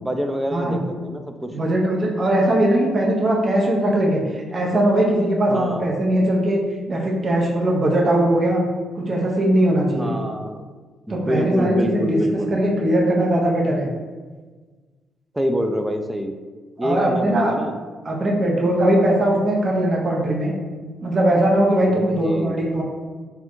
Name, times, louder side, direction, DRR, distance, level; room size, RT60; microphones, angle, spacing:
voice 1, 0.0-1.5 5.5-5.9 10.0-10.6 11.1-12.6 15.3-16.4 16.8-17.7 21.8-22.6, equal, 10° right, 6 dB, 0.4 m, -26 dB
voice 2, 1.5-4.2 4.5-6.6 6.9-8.6 9.0-10.2 11.1-13.9 16.8-17.5 18.0-20.5 21.0-22.8, right 1 dB, 40° right, -1 dB, 0.8 m, -20 dB
3.5 x 2.3 x 4.4 m, 1.4 s
cardioid pair, 90°, 0 cm